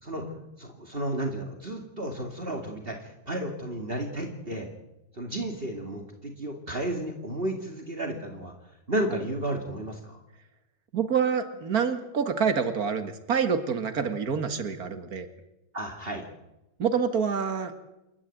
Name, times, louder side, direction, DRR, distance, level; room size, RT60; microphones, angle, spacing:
voice 1, 0.0-0.3 0.6-4.7 5.1-8.5 8.9-10.2 15.7-16.2, right 1 dB, 40° right, 3 dB, 2.6 m, -32 dB
voice 2, 10.9-15.3 16.8-17.7, right 6 dB, 75° right, 9 dB, 2.3 m, -27 dB
28.5 x 13.5 x 9.1 m, 0.92 s
omnidirectional pair, 1.6 m